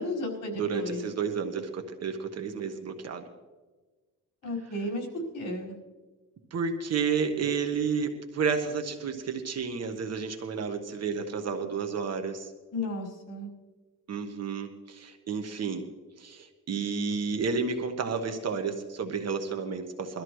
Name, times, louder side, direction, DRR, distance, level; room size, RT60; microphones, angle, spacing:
voice 1, 0.0-1.0 4.4-5.1 5.3-5.7 12.7-13.5, left 1 dB, 70° left, -3 dB, 5.1 m, -33 dB
voice 2, 0.5-3.2 6.5-12.5 14.1-15.9 16.2-20.2, right 5 dB, 50° right, 5 dB, 1.3 m, -31 dB
22.5 x 13.5 x 3.1 m, 1.3 s
cardioid pair, 130°, 32 cm